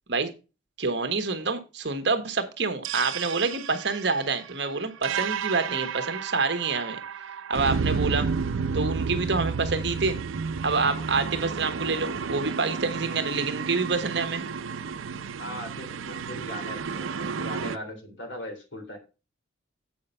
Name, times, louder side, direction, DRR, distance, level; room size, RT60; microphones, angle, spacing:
voice 1, 0.8-7.0 7.5-8.3 8.7-10.2 10.6-14.4, right 4 dB, 60° right, 1.3 m, -27 dB
sound 1, 2.8-17.8, right 5 dB, 90° right, 0.5 m, -31 dB
voice 2, 15.4-19.0, left 1 dB, 70° left, 3.2 m, -39 dB
8.5 x 5.2 x 5.4 m
head